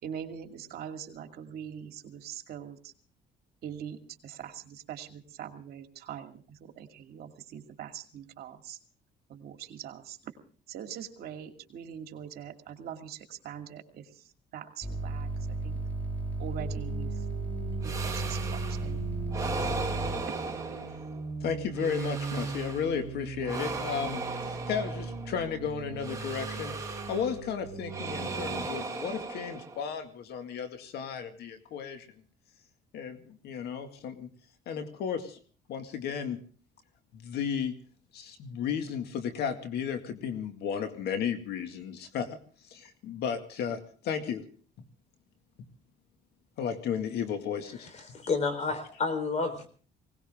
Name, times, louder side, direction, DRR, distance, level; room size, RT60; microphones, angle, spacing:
voice 1, 0.0-2.9 3.6-8.8 9.3-10.2 10.7-15.8 16.4-17.2 17.8-19.0 19.4-19.9, right 9 dB, 65° right, 5 dB, 2.4 m, -43 dB
sound 1, 14.8-20.2, right 2 dB, 10° left, 2.1 m, -34 dB
sound 2, 16.6-28.7, right 4 dB, 45° right, 3.6 m, -40 dB
sound 3, 17.8-18.9 19.3-21.3 21.7-23.0 23.4-25.4 26.0-27.4 27.9-30.0, right 3 dB, 20° right, 2.6 m, -37 dB
voice 2, 21.4-24.2 24.7-32.1 32.9-34.3 34.7-35.4 35.7-36.4 37.1-37.7 38.1-42.4 42.7-44.4 46.6-47.9, left 7 dB, 70° left, 7 dB, 2.1 m, -34 dB
voice 3, 47.8-49.7, left 4 dB, 40° left, 9 dB, 4.2 m, -30 dB
20.5 x 18.5 x 3.7 m, 0.43 s
cardioid pair, 110°, 17 cm